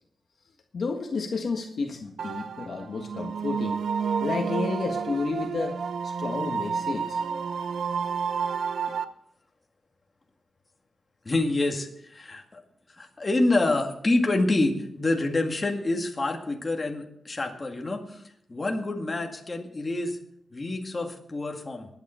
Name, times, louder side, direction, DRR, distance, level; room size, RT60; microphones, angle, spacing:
voice 1, 0.7-3.8 4.2-7.2, left 4 dB, 55° left, 3 dB, 1.6 m, -31 dB
sound 1, 2.2-9.0, right 6 dB, 90° right, 0.7 m, -30 dB
voice 2, 11.3-12.6 13.0-18.2 18.5-20.2 20.5-21.9, left 2 dB, 25° left, 2 dB, 2.0 m, -27 dB
21.0 x 9.7 x 4.5 m, 0.72 s
wide cardioid pair, 130°, 0 cm